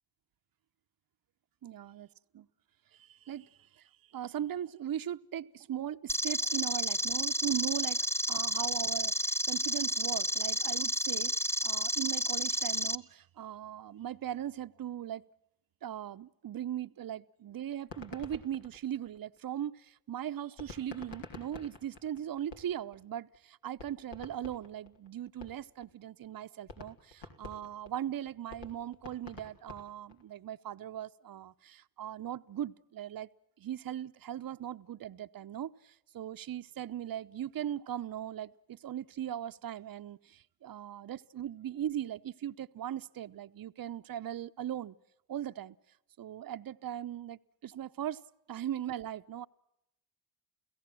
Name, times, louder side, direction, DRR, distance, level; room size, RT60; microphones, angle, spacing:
voice 1, 1.6-2.1 2.3-2.5 3.1-3.5 4.1-11.3 11.6-15.2 15.8-33.3 33.6-44.9 45.3-45.8 46.2-48.2 48.5-49.5, right 11 dB, 45° right, 0.9 m, -39 dB
sound 1, 6.1-12.9, equal, 5° left, 1.0 m, -31 dB
sound 2, 17.8-19.6 20.6-23.0 23.3-23.4 23.8-25.9 26.2-26.3 26.7-30.3, left 3 dB, 65° left, 3.9 m, -48 dB
30.0 x 17.0 x 7.7 m
supercardioid pair, 55°, 47 cm